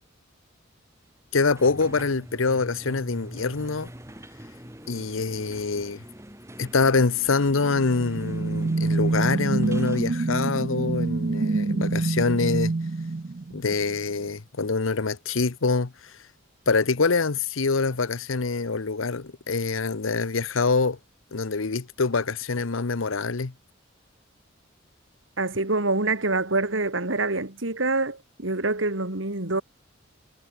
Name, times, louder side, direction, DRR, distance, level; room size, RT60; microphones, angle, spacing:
voice 1, 1.3-3.9 4.9-6.0 6.6-12.7 13.5-16.1 16.7-21.0 21.3-23.5, left 4 dB, 80° left, 0.9 m, -25 dB
sound 1, 1.5-10.1, equal, 15° right, 5.9 m, -44 dB
sound 2, 7.7-14.0, right 3 dB, 40° right, 0.5 m, -26 dB
voice 2, 25.4-29.6, right 2 dB, 70° right, 2.6 m, -26 dB
head